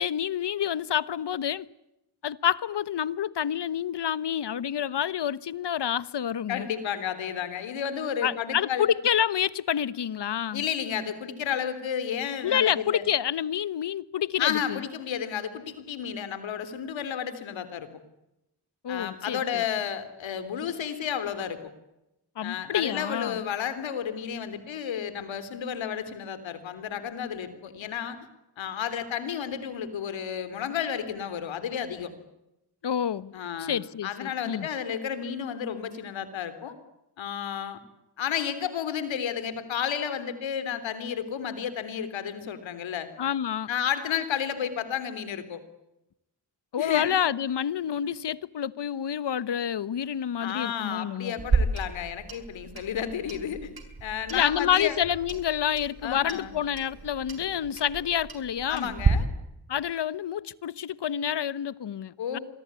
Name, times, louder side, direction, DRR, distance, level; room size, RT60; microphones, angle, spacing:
voice 1, 0.0-1.6 2.2-6.7 8.2-10.6 12.4-14.8 18.8-19.6 22.4-23.4 32.8-33.3 33.6-34.7 43.2-43.7 46.7-51.4 54.3-58.9 59.7-62.4, left 9 dB, 65° left, 1.3 m, -28 dB
voice 2, 6.5-8.9 10.5-13.1 14.4-17.9 18.9-21.7 22.4-28.2 28.6-32.1 33.3-33.8 34.0-36.8 37.2-37.8 38.2-43.1 43.7-45.6 46.8-47.1 50.4-53.7 54.0-55.0 56.0-56.5 58.7-59.3 62.2-62.4, left 8 dB, 90° left, 3.6 m, -32 dB
Clock, 51.4-59.1, right 4 dB, 55° right, 7.1 m, -32 dB
26.5 x 23.0 x 9.8 m
supercardioid pair, 45°, 45 cm